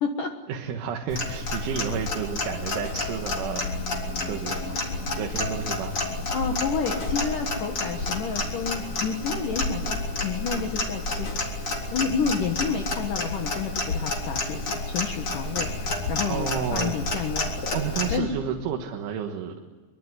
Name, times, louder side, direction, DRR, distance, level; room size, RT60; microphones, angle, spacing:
voice 1, 0.5-3.6 4.3-4.6 5.2-6.0 16.3-17.0 17.7-19.5, right 7 dB, 90° right, 3 dB, 4.1 m, -31 dB
Clock, 1.1-18.2, left 2 dB, 30° left, 4.0 m, -30 dB
voice 2, 6.3-11.3 11.9-17.6 18.1-18.3, left 6 dB, 60° left, 4 dB, 2.5 m, -30 dB
24.5 x 24.0 x 9.8 m, 1.3 s
omnidirectional pair, 5.3 m